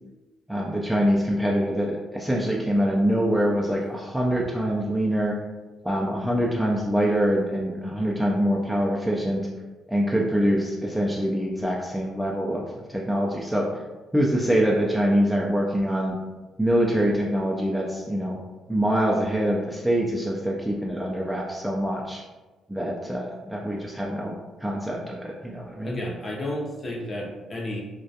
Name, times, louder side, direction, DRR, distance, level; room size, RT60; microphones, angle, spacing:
voice 1, 0.5-5.4 5.8-9.4 9.9-12.6 12.9-13.7 14.1-16.2 16.6-18.4 18.7-22.2 22.7-24.3 24.6-26.0, equal, 5° right, -2 dB, 0.3 m, -24 dB
voice 2, 25.8-27.8, left 1 dB, 35° left, -3 dB, 0.6 m, -32 dB
2.3 x 2.2 x 2.7 m, 1.2 s
cardioid pair, 90°, 0 cm